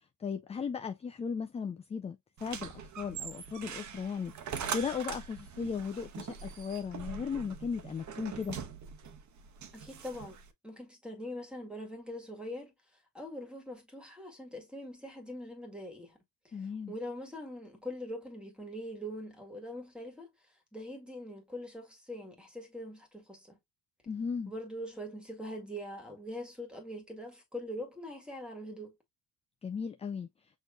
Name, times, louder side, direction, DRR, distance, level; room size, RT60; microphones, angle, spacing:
voice 1, 0.2-4.3 4.7-8.6 16.5-16.9 24.1-24.5 29.6-30.3, left 6 dB, 20° left, 0.3 m, -36 dB
sound 1, 2.4-10.5, right 7 dB, 45° right, 1.1 m, -42 dB
voice 2, 9.7-12.7 13.1-16.2 16.4-20.3 20.7-23.6 24.5-29.0, equal, ahead, 1.9 m, -43 dB
6.4 x 3.1 x 2.3 m
cardioid pair, 120°, 39 cm